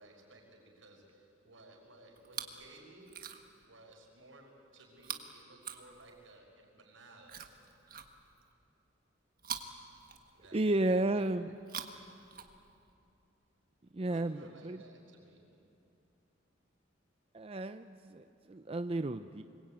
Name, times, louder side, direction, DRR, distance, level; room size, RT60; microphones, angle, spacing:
voice 1, 0.0-3.2 3.6-7.4 10.3-11.3 14.0-15.6, right 2 dB, 85° right, 0 dB, 5.9 m, -57 dB
Chewing mastication, 2.2-2.7 3.0-3.6 5.0-6.4 7.2-8.5 9.4-10.7 11.5-12.9 13.9-14.0, right 7 dB, 45° right, 1.5 m, -45 dB
voice 2, 10.5-11.5 13.9-14.8 17.3-19.4, right 2 dB, 30° right, 9 dB, 0.5 m, -33 dB
24.5 x 22.0 x 8.9 m, 2.6 s
head